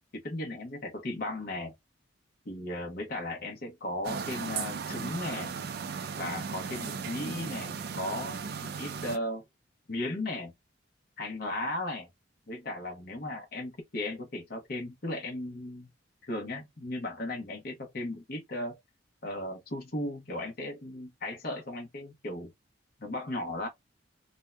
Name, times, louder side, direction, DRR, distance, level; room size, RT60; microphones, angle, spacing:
voice 1, 0.1-1.7 2.4-5.5 6.2-9.4 9.9-10.5 11.2-12.1 12.5-15.9 16.2-18.8 19.2-22.5 23.0-23.7, left 1 dB, 50° left, 0.8 m, -36 dB
sound 1, 4.0-9.2, right 6 dB, 55° right, 0.4 m, -36 dB
2.6 x 2.1 x 3.2 m
head